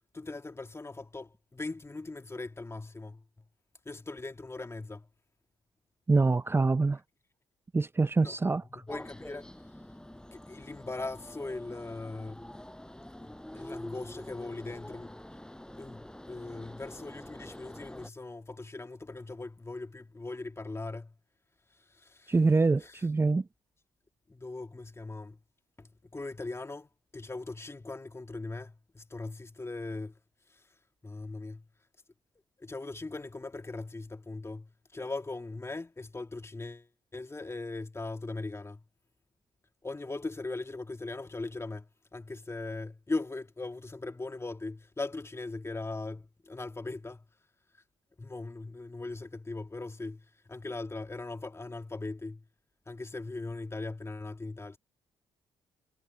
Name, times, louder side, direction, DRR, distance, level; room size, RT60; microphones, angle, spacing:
voice 1, 0.1-3.2 3.9-5.1 8.2-8.4 8.7-9.5 10.3-12.5 13.2-15.1 15.7-21.1 21.9-22.3 22.8-22.9 24.3-25.4 25.8-30.2 31.0-31.7 32.6-38.8 39.8-47.2 48.2-52.4 52.9-54.8, left 3 dB, 20° left, 2.1 m, -40 dB
voice 2, 6.1-7.0 7.7-8.8 22.3-23.5, right 3 dB, 20° right, 0.6 m, -25 dB
sound 1, 8.9-18.1, left 1 dB, 5° left, 6.4 m, -46 dB
hypercardioid pair, 50°, 12 cm